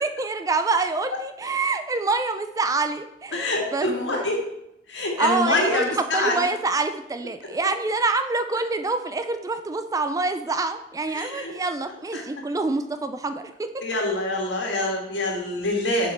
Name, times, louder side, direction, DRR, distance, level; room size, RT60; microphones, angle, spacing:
voice 1, 0.0-4.3 5.2-5.8 6.1-13.7, right 3 dB, 20° right, 9 dB, 0.4 m, -26 dB
voice 2, 3.3-4.4 4.9-6.5 11.1-11.5 12.1-12.3 13.8-16.1, left 2 dB, 80° left, 0 dB, 1.7 m, -25 dB
6.8 x 5.0 x 4.5 m, 0.81 s
head